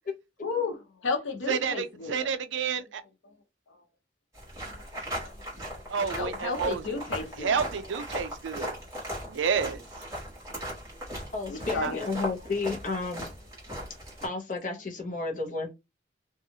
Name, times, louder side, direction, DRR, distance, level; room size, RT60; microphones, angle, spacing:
voice 1, 0.4-2.3 4.7-4.8 5.2-5.3 6.1-7.7 11.5-12.0, left 4 dB, 90° left, 0.7 m, -33 dB
voice 2, 1.5-3.0 5.9-6.8 7.4-8.7 9.3-9.8 11.8-11.9, right 6 dB, 80° right, 0.4 m, -29 dB
sound 1, 4.3-14.3, equal, 15° right, 1.4 m, -38 dB
voice 3, 11.3-13.3 14.2-15.7, left 3 dB, 40° left, 0.7 m, -32 dB
2.7 x 2.3 x 2.7 m
head